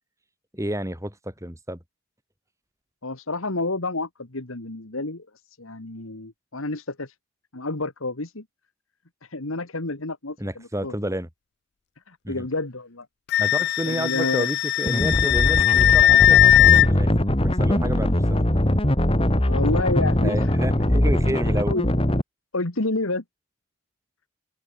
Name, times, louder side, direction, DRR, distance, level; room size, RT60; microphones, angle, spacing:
voice 1, 0.5-1.8 10.4-11.3 12.2-12.5 13.4-17.1 17.4-18.4 20.2-21.8, right 1 dB, 15° right, 7.2 m, -30 dB
voice 2, 3.0-7.1 7.5-8.4 9.2-10.9 12.1-13.1 13.8-14.5 19.4-20.5 21.0-21.9 22.5-23.2, left 2 dB, 70° left, 2.0 m, -29 dB
Wind instrument woodwind instrument, 13.3-16.9, left 13 dB, 50° left, 0.4 m, -18 dB
sound 1, 14.9-22.2, left 1 dB, 25° left, 1.8 m, -21 dB
open air
head